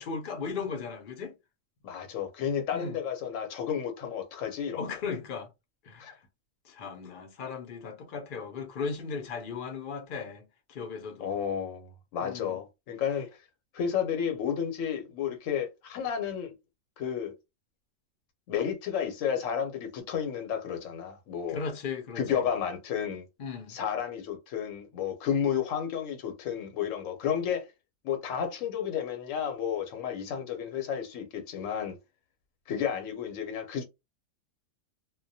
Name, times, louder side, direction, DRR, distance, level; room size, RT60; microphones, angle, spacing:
voice 1, 0.0-1.3 2.7-3.0 4.8-5.5 5.8-6.2 6.6-11.4 12.2-12.6 21.5-22.4 23.4-23.8, left 5 dB, 55° left, 0.6 m, -37 dB
voice 2, 1.8-4.9 6.0-6.1 11.2-13.3 13.7-16.5 17.0-17.3 18.5-21.6 22.2-23.2 23.7-27.7 28.0-32.0 32.7-33.8, left 8 dB, 75° left, 1.0 m, -32 dB
2.3 x 2.1 x 2.6 m
omnidirectional pair, 1.4 m